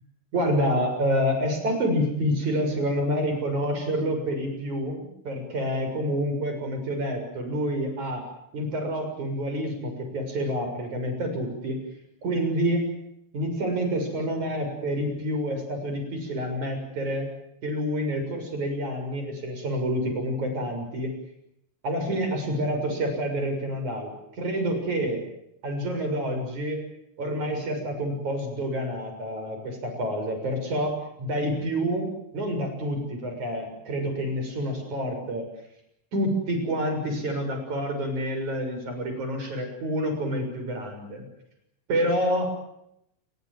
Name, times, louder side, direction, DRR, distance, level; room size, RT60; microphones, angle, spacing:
voice 1, 0.3-8.2 8.5-11.8 12.2-12.8 13.3-17.3 17.6-21.1 21.8-25.2 25.6-26.8 27.2-32.1 32.3-35.5 36.1-41.2 41.9-42.5, equal, 35° right, 5 dB, 7.8 m, -28 dB
29.5 x 23.5 x 7.9 m, 0.79 s
omnidirectional pair, 5.7 m